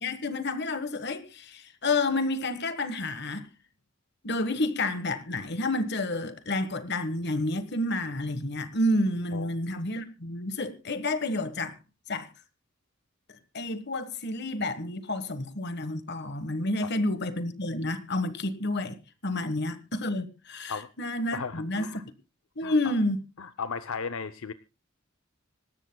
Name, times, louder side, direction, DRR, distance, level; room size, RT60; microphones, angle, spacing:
voice 1, 0.0-3.5 4.2-11.8 12.1-12.3 13.5-21.9 22.6-23.2, left 2 dB, 55° left, 1.4 m, -30 dB
voice 2, 21.3-22.0 22.6-22.9 23.4-24.5, left 5 dB, 80° left, 0.7 m, -35 dB
25.5 x 13.0 x 2.3 m
head